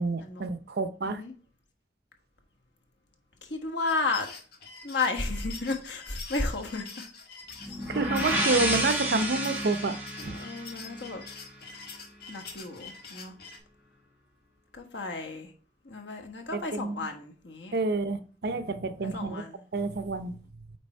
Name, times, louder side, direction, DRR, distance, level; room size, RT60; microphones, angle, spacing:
voice 1, 0.0-1.2 7.9-10.0 10.2-10.4 16.5-17.1 17.7-19.4 19.7-20.4, right 3 dB, 60° right, 0.6 m, -29 dB
voice 2, 3.4-4.3 4.8-6.9 7.7-7.8 10.2-11.2 12.3-13.3 14.7-15.5 15.8-17.7 19.0-19.6, left 3 dB, 80° left, 1.4 m, -33 dB
sound 1, 3.9-13.6, left 5 dB, 60° left, 1.5 m, -45 dB
sound 2, 7.6-11.4, right 1 dB, 10° right, 1.8 m, -31 dB
8.7 x 3.5 x 4.4 m
head